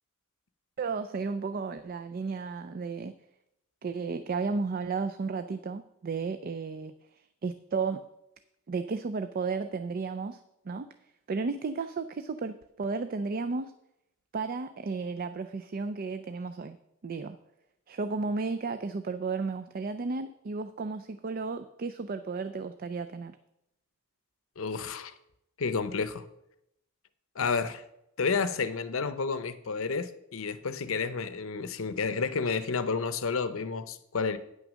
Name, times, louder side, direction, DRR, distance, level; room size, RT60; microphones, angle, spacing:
voice 1, 0.8-3.1 3.8-8.0 8.7-10.4 10.7-10.9 11.3-13.7 14.3-16.8 17.0-17.4 17.9-23.4, right 4 dB, 45° right, 10 dB, 0.4 m, -33 dB
voice 2, 24.6-25.1 25.6-26.2 27.4-27.8 28.2-34.4, left 5 dB, 65° left, 13 dB, 0.7 m, -30 dB
9.4 x 6.3 x 6.2 m, 0.83 s
head